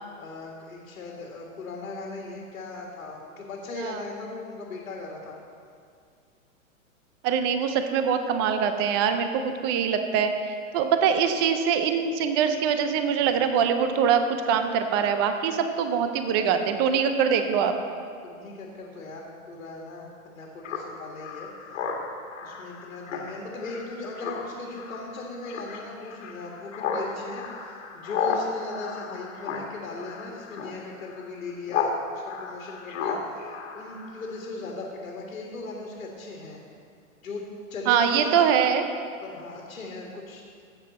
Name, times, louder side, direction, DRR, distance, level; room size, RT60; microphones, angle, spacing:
voice 1, 0.2-5.4 18.2-20.1 20.3-21.8 22.4-36.6 37.2-37.4 37.7-38.5 39.2-40.4, left 3 dB, 85° left, -1 dB, 2.0 m, -38 dB
voice 2, 7.2-17.7 37.9-38.8, right 7 dB, 20° right, 8 dB, 0.4 m, -23 dB
Speech synthesizer, 20.6-32.0 32.2-34.5, left 6 dB, 60° left, 1.6 m, -34 dB
13.5 x 7.4 x 4.2 m, 2.2 s
hypercardioid pair, 125°, 41 cm